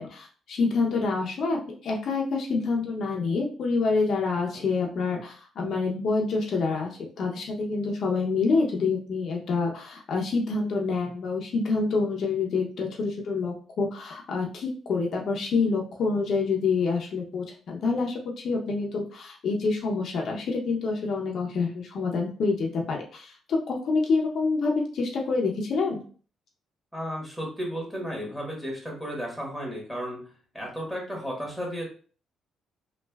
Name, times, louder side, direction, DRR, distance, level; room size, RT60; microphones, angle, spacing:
voice 1, 0.0-26.0, left 4 dB, 65° left, 0 dB, 0.6 m, -27 dB
voice 2, 26.9-31.8, equal, 5° right, -1 dB, 1.4 m, -34 dB
3.2 x 2.4 x 2.3 m, 0.41 s
cardioid pair, 90°, 0 cm